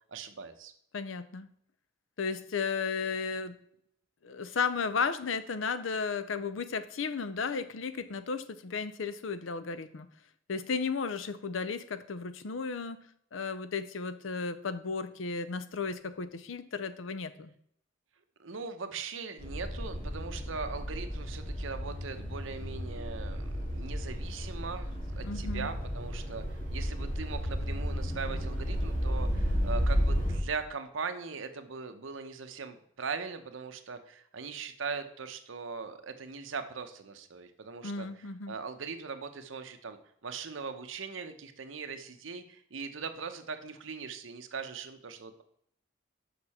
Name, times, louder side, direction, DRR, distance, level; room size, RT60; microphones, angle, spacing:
voice 1, 0.1-0.7 18.4-40.0 40.2-45.4, right 5 dB, 85° right, 8 dB, 0.8 m, -40 dB
voice 2, 0.9-1.5 2.2-3.5 4.2-10.1 10.5-13.0 13.3-17.5 25.2-25.7 37.8-38.5, left 5 dB, 85° left, 12 dB, 0.6 m, -34 dB
sound 1, 19.4-30.4, equal, 35° left, 2.5 m, -33 dB
6.7 x 5.5 x 4.2 m, 0.69 s
head